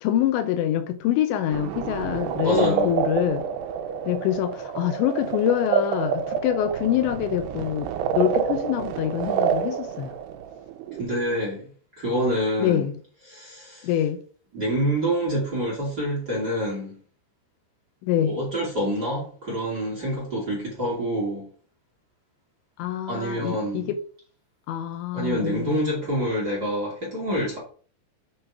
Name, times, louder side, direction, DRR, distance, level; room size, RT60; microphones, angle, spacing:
voice 1, 0.0-3.5 4.1-10.2 12.6-13.0 13.8-14.2 18.0-18.4 22.8-24.0 24.7-25.9, left 11 dB, 80° left, 3.0 m, -25 dB
sound 1, 1.5-11.0, right 7 dB, 85° right, 2.4 m, -28 dB
voice 2, 2.4-2.9 11.0-11.7 12.0-12.9 13.3-13.9 14.5-17.0 18.2-21.5 23.1-23.9 25.1-27.6, equal, 30° right, 2.3 m, -27 dB
8.9 x 4.5 x 4.7 m
omnidirectional pair, 5.3 m